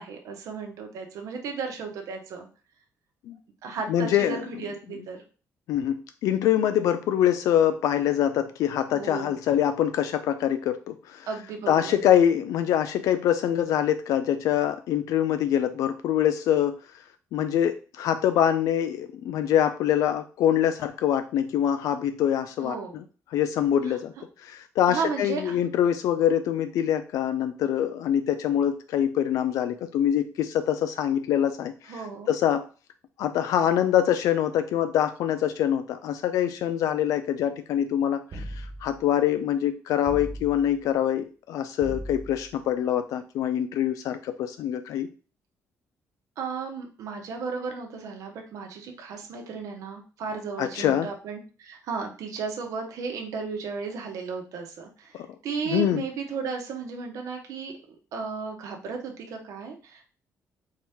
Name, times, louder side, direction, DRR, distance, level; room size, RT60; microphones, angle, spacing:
voice 1, 0.0-2.5 3.6-5.2 8.9-9.4 11.3-12.0 22.6-23.0 23.8-24.0 24.9-25.6 31.9-32.3 46.4-60.1, right 5 dB, 70° right, 3 dB, 1.1 m, -34 dB
voice 2, 3.9-4.4 5.7-6.0 6.2-11.3 11.7-16.8 17.3-22.8 23.3-24.1 24.4-31.9 32.3-32.6 33.2-45.1 50.6-51.1 55.1-55.3 55.7-56.0, left 10 dB, 80° left, 9 dB, 0.3 m, -24 dB
sound 1, 38.3-39.1 40.1-40.8 41.8-42.6, right 1 dB, 35° right, 0.6 m, -38 dB
4.4 x 2.8 x 3.5 m, 0.36 s
cardioid pair, 160°, 6 cm